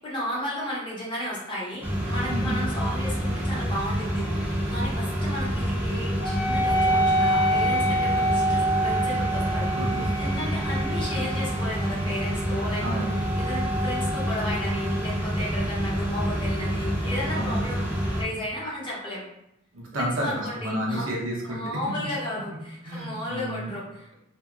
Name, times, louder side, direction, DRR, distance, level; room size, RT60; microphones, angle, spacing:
voice 1, 0.0-9.7 10.2-17.8 18.1-19.2 19.9-21.1 21.4-24.1, left 1 dB, 25° left, -6 dB, 0.9 m, -34 dB
sound 1, 1.8-18.2, equal, 10° right, 0.6 m, -28 dB
voice 2, 2.3-2.6 9.7-10.3 12.8-13.1 17.3-17.6 19.7-21.6 22.0-22.1 22.8-23.7, equal, 75° right, -3 dB, 0.8 m, -31 dB
Wind instrument woodwind instrument, 6.2-15.1, right 1 dB, 50° left, 0.7 m, -28 dB
2.8 x 2.7 x 2.3 m, 0.83 s
head